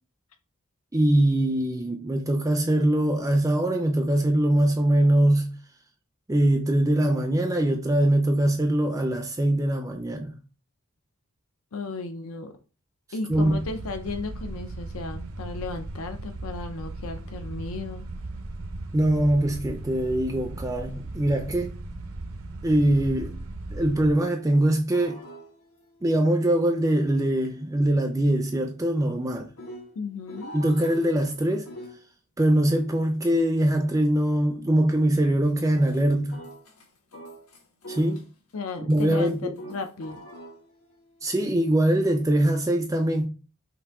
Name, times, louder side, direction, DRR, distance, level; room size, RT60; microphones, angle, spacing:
voice 1, 0.9-5.5 6.3-10.4 13.3-13.6 18.9-21.7 22.6-23.4 23.7-25.2 26.0-29.5 30.5-31.7 32.4-36.4 37.9-38.2 38.9-39.5 41.2-43.3, right 1 dB, 15° right, 0.4 m, -22 dB
voice 2, 11.7-12.6 13.1-18.1 30.0-30.6 38.5-40.2, left 3 dB, 70° left, 0.5 m, -35 dB
sound 1, 13.3-24.1, right 2 dB, 70° right, 0.6 m, -37 dB
sound 2, 24.5-32.0 35.4-36.0 36.3-38.5 38.9-42.3, equal, 85° left, 1.4 m, -47 dB
5.9 x 2.6 x 3.5 m
head